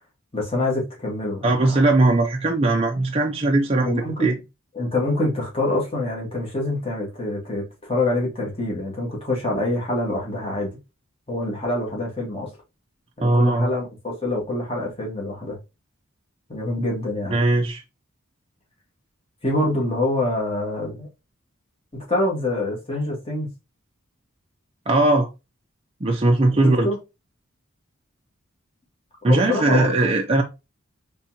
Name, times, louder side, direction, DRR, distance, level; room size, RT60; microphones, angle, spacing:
voice 1, 0.3-1.8 3.8-4.4 4.7-10.7 11.3-12.5 13.2-15.6 16.5-17.4 19.4-21.1 22.1-23.5 26.5-27.0 29.2-30.1, left 2 dB, 25° left, 1.9 m, -25 dB
voice 2, 1.4-3.9 4.2-4.3 13.2-13.7 17.3-17.8 24.9-25.3 26.0-26.9 29.2-30.4, right 2 dB, 25° right, 0.5 m, -19 dB
4.2 x 3.7 x 2.8 m
head